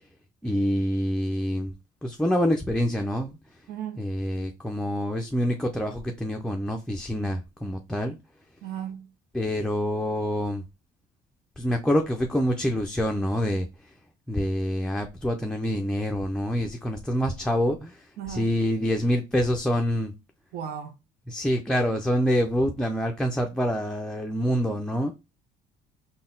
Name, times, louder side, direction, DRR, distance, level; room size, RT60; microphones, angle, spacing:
voice 1, 0.4-1.7 2.0-3.4 4.0-8.2 9.3-10.6 11.6-13.7 14.3-20.1 21.3-25.1, equal, 5° left, 0.4 m, -26 dB
voice 2, 3.7-4.0 8.6-9.1 18.2-18.5 20.5-21.0, right 9 dB, 70° right, 0.7 m, -35 dB
3.9 x 2.2 x 3.7 m
cardioid pair, 110°, 17 cm